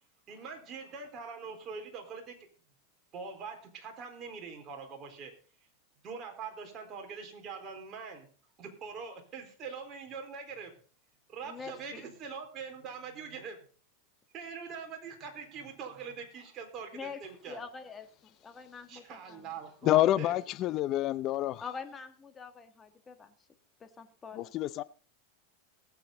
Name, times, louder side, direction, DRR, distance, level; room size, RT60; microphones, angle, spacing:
voice 1, 0.3-2.3 3.1-5.3 6.0-8.3 8.6-10.7 11.3-13.6 14.3-17.6 18.9-20.4, right 5 dB, 35° right, 4.1 m, -43 dB
voice 2, 11.4-12.0 16.9-17.2 17.5-19.4 21.6-23.3 23.8-24.5, left 5 dB, 20° left, 1.6 m, -45 dB
voice 3, 19.8-21.6 24.3-24.8, left 14 dB, 40° left, 0.6 m, -27 dB
19.5 x 8.2 x 3.9 m
supercardioid pair, 125°, 0 cm